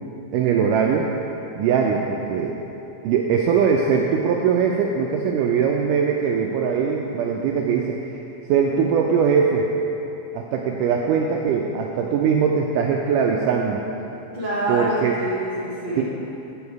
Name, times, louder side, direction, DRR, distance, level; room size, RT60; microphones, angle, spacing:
voice 1, 0.3-1.1 1.6-2.5 3.0-8.0 8.5-9.7 10.3-13.8 14.7-15.2 16.0-16.1, right 6 dB, 85° right, 0 dB, 1.9 m, -21 dB
voice 2, 14.3-16.0, right 1 dB, 55° left, -11 dB, 0.5 m, -26 dB
8.8 x 7.1 x 4.7 m, 2.9 s
omnidirectional pair, 4.2 m